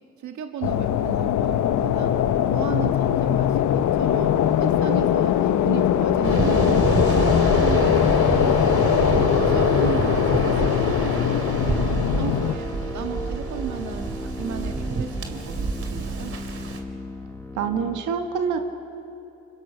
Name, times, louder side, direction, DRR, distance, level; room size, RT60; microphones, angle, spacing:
voice 1, 0.2-2.1 2.5-8.8 9.4-11.8 12.2-12.7 12.9-16.3, right 7 dB, 70° right, 4 dB, 1.7 m, -35 dB
sound 1, 0.6-12.6, left 10 dB, 75° left, 1.0 m, -21 dB
Waves surf, 6.2-16.8, right 4 dB, 50° right, 2.7 m, -27 dB
sound 2, 8.3-18.0, left 2 dB, 10° left, 1.7 m, -36 dB
voice 2, 17.6-18.6, right 6 dB, 85° right, 5 dB, 1.9 m, -25 dB
30.0 x 25.5 x 5.8 m, 2.7 s
cardioid pair, 90°, 30 cm